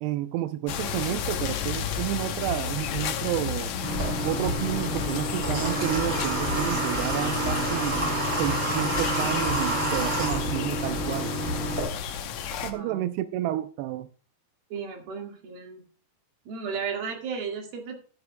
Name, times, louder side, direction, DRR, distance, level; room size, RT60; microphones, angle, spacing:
voice 1, 0.0-3.7 4.2-8.0 8.4-11.3 12.6-14.1, right 14 dB, 90° right, 2.7 m, -30 dB
sound 1, 0.7-12.7, left 7 dB, 90° left, 1.5 m, -33 dB
sound 2, 2.5-11.8, left 2 dB, 10° right, 2.1 m, -37 dB
Water / Water tap faucet, 3.8-11.8, right 1 dB, 30° right, 5.7 m, -28 dB
voice 2, 12.7-13.0 14.7-15.8 16.5-17.9, right 6 dB, 70° right, 3.8 m, -34 dB
14.0 x 11.5 x 2.2 m
omnidirectional pair, 4.5 m